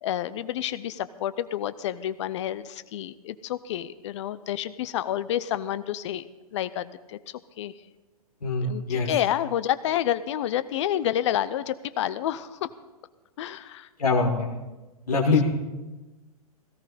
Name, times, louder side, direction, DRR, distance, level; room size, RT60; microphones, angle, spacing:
voice 1, 0.0-7.2 7.6-7.7 8.6-12.7 13.4-13.9 15.3-15.4, left 11 dB, 50° left, 15 dB, 0.6 m, -29 dB
voice 2, 8.4-9.1 14.0-14.5 15.1-15.4, left 4 dB, 80° left, -4 dB, 2.1 m, -23 dB
17.5 x 14.5 x 4.1 m, 1.1 s
figure-of-eight pair, 115°, 19 cm